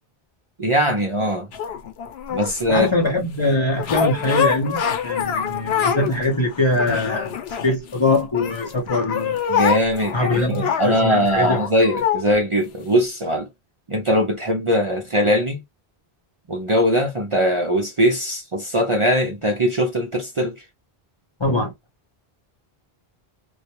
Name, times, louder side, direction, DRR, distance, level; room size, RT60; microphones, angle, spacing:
voice 1, 0.6-1.5 2.3-2.9 9.5-13.5 13.9-15.6 16.5-20.5, equal, 40° right, 0.5 m, -21 dB
sound 1, 1.5-2.9 3.8-6.2 6.5-8.0 8.3-12.2 12.9-13.0, left 8 dB, 85° left, 0.8 m, -25 dB
voice 2, 2.7-9.4 10.1-11.6 21.4-21.7, left 2 dB, 35° left, 0.5 m, -22 dB
2.3 x 2.1 x 2.7 m
omnidirectional pair, 1.0 m